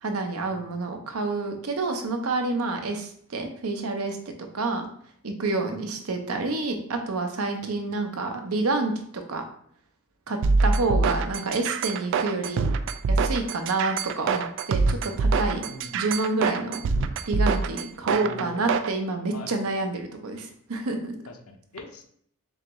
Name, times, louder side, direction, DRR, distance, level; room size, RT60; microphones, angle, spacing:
voice 1, 0.0-4.9 5.2-9.4 10.3-12.7 13.1-15.6 15.9-16.8 17.3-21.1, right 3 dB, 90° right, 5 dB, 0.7 m, -28 dB
sound 1, 10.4-18.9, right 4 dB, 60° right, 0.3 m, -24 dB
voice 2, 15.6-16.1 18.0-18.7 19.3-19.5 21.3-22.0, left 3 dB, 90° left, 4 dB, 0.7 m, -42 dB
3.9 x 3.4 x 3.0 m, 0.64 s
head